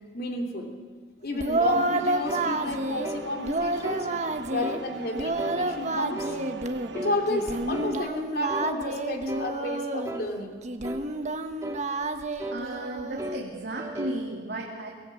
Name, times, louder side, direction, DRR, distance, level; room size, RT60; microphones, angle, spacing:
voice 1, 0.1-0.7 1.2-4.1 4.5-6.4 6.9-10.6, left 2 dB, 60° left, 2 dB, 2.9 m, -32 dB
Singing, 1.3-3.1 3.4-4.8 5.1-6.9 7.3-10.1 10.6-13.4, right 2 dB, 40° right, 1.3 m, -29 dB
sound 1, 1.6-7.9, right 4 dB, 90° right, 1.2 m, -41 dB
sound 2, 2.3-2.5 3.0-3.3 3.8-4.1 4.6-4.8 5.4-5.6 6.2-6.4 6.9-7.2 7.7-8.0 8.5-8.7 9.3-9.5 10.0-10.3 10.8-11.1 11.6-11.8 12.4-12.6 13.2-13.4 13.8-14.2, equal, 20° right, 1.8 m, -35 dB
voice 2, 12.5-14.9, right 2 dB, 65° right, -2 dB, 2.5 m, -34 dB
23.5 x 17.0 x 8.4 m, 1.6 s
head